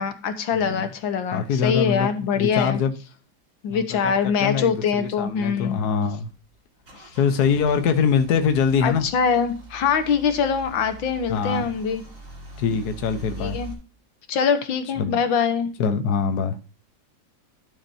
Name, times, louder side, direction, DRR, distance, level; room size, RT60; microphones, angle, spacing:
voice 1, 0.0-2.8 3.6-5.8 8.8-12.0 13.4-13.7 14.3-15.7, left 6 dB, 85° left, 1.9 m, -23 dB
voice 2, 0.5-0.9 1.3-3.0 3.7-6.3 7.2-9.1 11.3-11.7 12.6-13.6 15.0-15.2 15.8-16.6, left 6 dB, 60° left, 1.4 m, -23 dB
Car / Engine starting / Idling, 6.4-13.7, right 2 dB, 45° right, 3.5 m, -42 dB
12.0 x 7.1 x 2.7 m
omnidirectional pair, 2.0 m